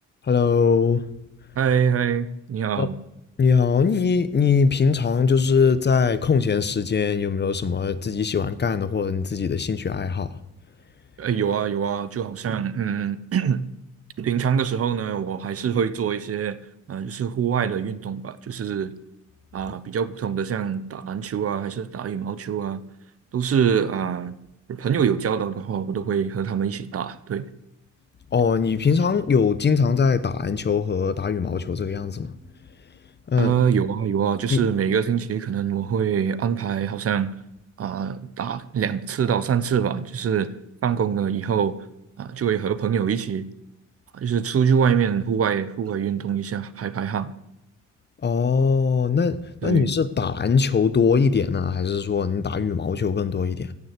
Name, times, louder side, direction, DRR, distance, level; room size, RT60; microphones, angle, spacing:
voice 1, 0.3-1.0 2.8-2.9 3.4-10.4 28.3-32.4 33.3-33.5 34.5-34.6 48.2-53.7, left 5 dB, 35° left, 1.0 m, -21 dB
voice 2, 1.6-3.0 11.2-13.6 14.2-16.6 16.9-18.9 19.5-22.8 23.3-24.3 24.7-27.5 33.4-37.3 37.8-40.5 40.8-41.8 42.2-43.5 44.1-47.3 49.6-49.9, right 7 dB, 50° right, 1.0 m, -24 dB
15.5 x 7.1 x 8.3 m
cardioid pair, 90°, 30 cm